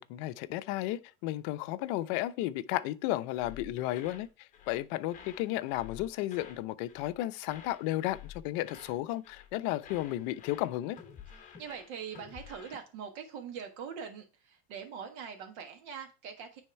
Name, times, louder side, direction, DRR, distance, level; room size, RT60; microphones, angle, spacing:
voice 1, 0.0-11.0, left 15 dB, 55° left, 0.6 m, -33 dB
sound 1, 3.3-4.3 4.5-4.8 5.1-6.6 6.9-7.2 7.4-9.0 9.2-9.5 9.8-12.8, left 8 dB, 20° left, 1.2 m, -51 dB
voice 2, 11.3-16.6, right 7 dB, 65° right, 1.5 m, -43 dB
9.5 x 3.5 x 4.5 m
supercardioid pair, 145°, 35 cm